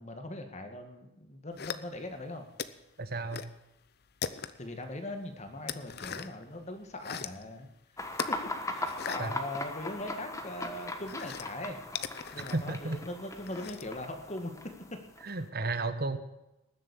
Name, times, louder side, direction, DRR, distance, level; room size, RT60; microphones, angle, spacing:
voice 1, 0.0-2.5 4.6-7.7 8.1-11.8 12.3-15.0, left 1 dB, 35° left, 6 dB, 1.8 m, -40 dB
sound 1, 1.6-2.2 2.6-3.6 3.9-4.8 5.2-6.4 6.8-7.4 8.1-10.2 10.5-14.0, left 7 dB, 55° left, 0.7 m, -40 dB
voice 2, 3.0-3.5 9.2-9.3 12.5-13.0 15.2-16.2, right 2 dB, 50° right, 10 dB, 1.1 m, -33 dB
sound 2, 8.0-15.5, left 2 dB, 15° left, 1.3 m, -39 dB
19.5 x 7.5 x 7.1 m, 0.94 s
head